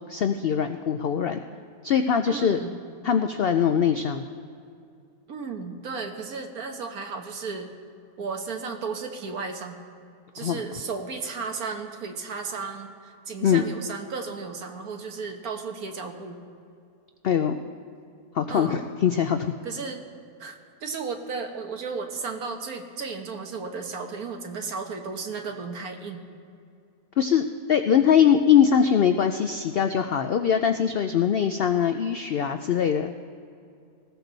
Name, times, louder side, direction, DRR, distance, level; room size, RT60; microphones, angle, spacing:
voice 1, 0.1-1.4 1.8-2.6 3.0-4.2 10.4-10.6 13.4-13.7 17.2-17.6 18.3-19.5 27.2-33.1, left 8 dB, 75° left, 8 dB, 0.5 m, -22 dB
voice 2, 2.3-2.8 5.3-7.7 8.2-9.8 10.3-16.4 18.5-18.8 19.6-20.0 20.4-26.2, right 4 dB, 70° right, 4 dB, 1.7 m, -34 dB
19.0 x 15.5 x 4.0 m, 2.5 s
omnidirectional pair, 1.6 m